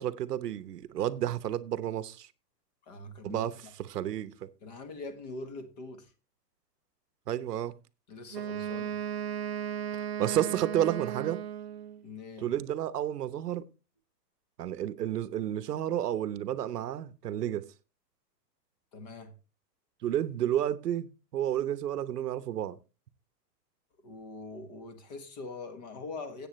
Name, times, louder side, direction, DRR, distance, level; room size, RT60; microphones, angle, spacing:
voice 1, 0.0-2.3 3.2-3.5 3.8-4.5 7.3-7.7 10.2-11.4 12.4-13.6 14.6-17.6 20.0-21.1 21.3-22.8, right 11 dB, 70° right, 1.0 m, -31 dB
voice 2, 2.8-3.7 4.6-6.1 8.1-9.0 12.0-12.5 18.9-19.3 24.0-26.5, left 3 dB, 25° left, 1.3 m, -43 dB
Wind instrument woodwind instrument, 8.3-12.0, right 9 dB, 40° right, 0.5 m, -35 dB
14.5 x 8.7 x 3.1 m
hypercardioid pair, 180°, 49 cm